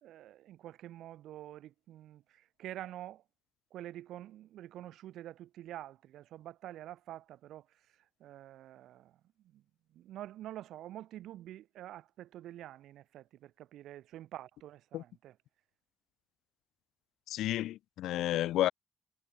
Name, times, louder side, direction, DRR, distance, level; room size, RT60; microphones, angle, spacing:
voice 1, 0.0-3.2 3.7-7.8 8.2-9.6 9.9-15.4, right 13 dB, 80° right, 2.0 m, -47 dB
voice 2, 17.3-18.7, left 14 dB, 85° left, 0.4 m, -31 dB
cardioid pair, 90°, 0 cm